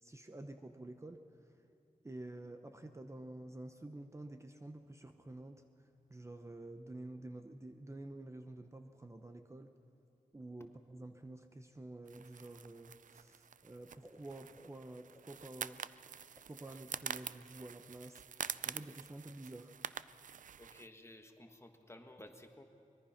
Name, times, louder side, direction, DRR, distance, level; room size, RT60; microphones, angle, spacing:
voice 1, 0.0-1.6 2.0-9.8 10.3-15.8 16.5-18.2 18.7-19.7, right 2 dB, 20° right, 7 dB, 0.8 m, -50 dB
sound 1, 12.1-20.9, right 8 dB, 75° right, 0.4 m, -46 dB
voice 2, 20.6-22.6, left 1 dB, 20° left, 5 dB, 1.5 m, -55 dB
24.0 x 21.0 x 5.9 m, 2.7 s
wide cardioid pair, 120°, 13 cm